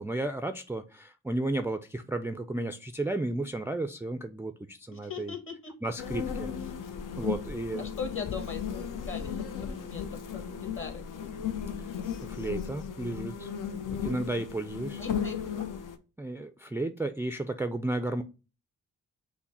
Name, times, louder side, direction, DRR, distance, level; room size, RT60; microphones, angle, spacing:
voice 1, 0.0-5.3 5.8-6.5 7.2-7.9 12.2-13.5 14.0-15.0 16.2-18.2, right 2 dB, 10° right, 6 dB, 0.3 m, -33 dB
voice 2, 4.9-5.7 7.8-11.0 15.0-15.7, left 5 dB, 40° left, 5 dB, 1.4 m, -40 dB
sound 1, 6.0-16.0, left 7 dB, 70° left, 0.6 m, -35 dB
5.8 x 2.1 x 4.1 m, 0.32 s
cardioid pair, 60°, 32 cm